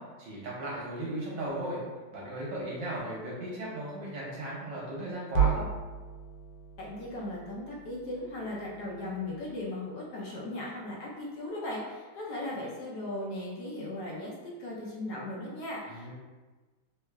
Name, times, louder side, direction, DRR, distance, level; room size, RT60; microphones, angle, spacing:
voice 1, 0.0-1.8 2.1-5.7 15.9-16.1, right 1 dB, 70° right, -5 dB, 1.2 m, -36 dB
sound 1, 5.3-9.7, right 7 dB, 80° left, 1.5 m, -34 dB
voice 2, 6.8-16.1, left 1 dB, 65° left, -4 dB, 1.0 m, -37 dB
3.2 x 3.1 x 2.3 m, 1.3 s
omnidirectional pair, 2.3 m